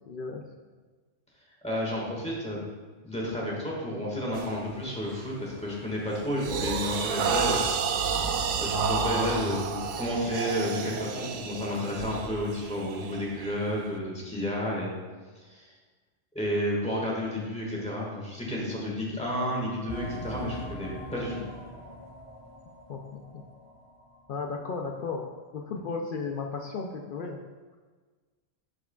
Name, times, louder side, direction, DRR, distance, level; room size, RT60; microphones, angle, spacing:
voice 1, 0.0-0.5 22.9-23.4 24.3-25.3 25.5-27.4, left 4 dB, 60° left, 2 dB, 0.6 m, -35 dB
voice 2, 1.6-2.6 3.0-7.7 8.0-14.9 15.4-15.7 16.3-21.4, left 1 dB, 5° left, -4 dB, 1.5 m, -31 dB
sound 1, 4.3-4.6 5.1-5.4 5.8-13.9, right 5 dB, 85° right, 0.9 m, -30 dB
sound 2, 19.9-24.2 24.5-24.6 25.2-25.3, equal, 30° left, 0.8 m, -42 dB
12.0 x 4.7 x 2.3 m, 1.4 s
omnidirectional pair, 1.2 m